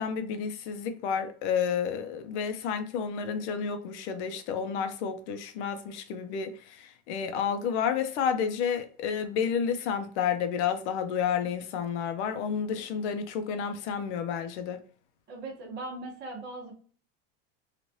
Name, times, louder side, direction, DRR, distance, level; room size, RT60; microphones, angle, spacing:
voice 1, 0.0-14.8, left 7 dB, 75° left, 0.7 m, -30 dB
voice 2, 15.3-16.7, right 2 dB, 30° right, 1.0 m, -39 dB
3.1 x 2.5 x 2.7 m
supercardioid pair, 145°, 35 cm